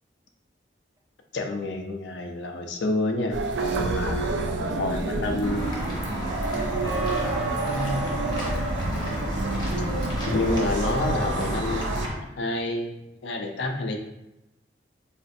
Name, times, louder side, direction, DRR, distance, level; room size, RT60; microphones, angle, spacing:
voice 1, 1.3-4.2 4.8-5.8 10.3-14.0, left 2 dB, 75° left, 3 dB, 0.5 m, -29 dB
sound 1, 3.3-12.1, right 2 dB, 85° right, 0.4 m, -29 dB
voice 2, 3.7-4.3 4.6-8.6, right 2 dB, 20° right, 2 dB, 0.3 m, -40 dB
Walk footsteps / Bell, 5.4-12.1, equal, 25° left, 0.7 m, -32 dB
4.0 x 2.5 x 2.5 m, 0.92 s
head